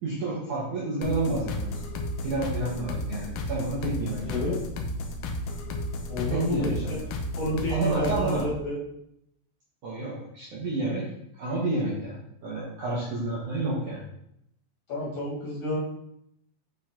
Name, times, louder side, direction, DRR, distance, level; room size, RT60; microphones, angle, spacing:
voice 1, 0.0-1.7 2.2-4.5 6.3-7.0 7.7-8.5 9.8-11.1 11.3-14.0, right 2 dB, 65° right, -6 dB, 2.0 m, -30 dB
sound 1, 1.0-8.5, left 1 dB, 75° left, 2.6 m, -33 dB
voice 2, 4.2-4.6 6.1-7.0 7.4-8.8 14.9-15.8, left 1 dB, 50° left, -5 dB, 2.8 m, -30 dB
9.3 x 5.3 x 3.8 m, 0.78 s
omnidirectional pair, 5.4 m